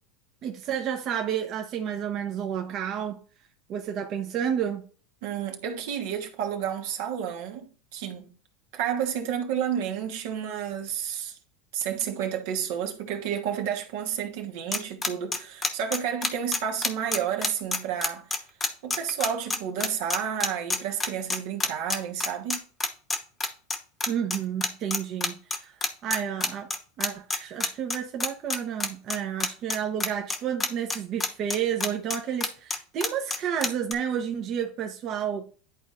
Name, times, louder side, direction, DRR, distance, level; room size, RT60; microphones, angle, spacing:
voice 1, 0.4-3.2 3.7-4.8 24.1-25.7 26.0-26.7 27.0-35.4, right 8 dB, 45° right, 0.9 m, -30 dB
voice 2, 5.2-7.6 7.9-8.3 8.7-11.4 11.7-18.3 18.8-22.6, right 9 dB, 70° right, 1.2 m, -31 dB
sound 1, 14.7-33.9, left 3 dB, 20° left, 1.1 m, -27 dB
11.0 x 4.1 x 2.5 m
hypercardioid pair, 100°, 0 cm